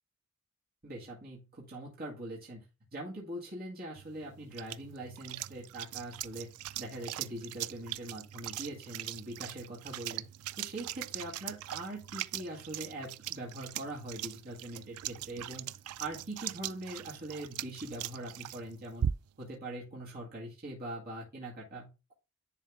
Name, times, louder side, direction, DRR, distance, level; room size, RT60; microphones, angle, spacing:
voice 1, 0.8-2.6 2.9-6.5 6.8-10.3 10.6-19.1 19.4-22.1, right 1 dB, 45° right, -5 dB, 2.0 m, -42 dB
sound 1, 4.0-19.5, right 11 dB, 85° right, 0.3 m, -41 dB
10.0 x 3.6 x 3.6 m, 0.28 s
head